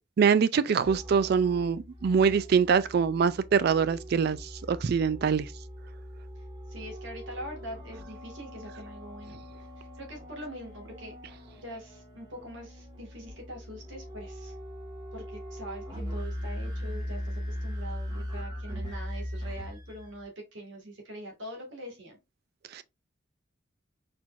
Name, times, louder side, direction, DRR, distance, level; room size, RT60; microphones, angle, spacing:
voice 1, 0.2-5.5 22.7-22.8, right 6 dB, 55° right, 0.3 m, -24 dB
sound 1, 0.8-20.2, equal, 25° right, 1.6 m, -40 dB
voice 2, 6.4-9.4 9.8-14.5 15.1-22.2, equal, 85° right, 1.9 m, -43 dB
4.4 x 4.3 x 2.5 m
head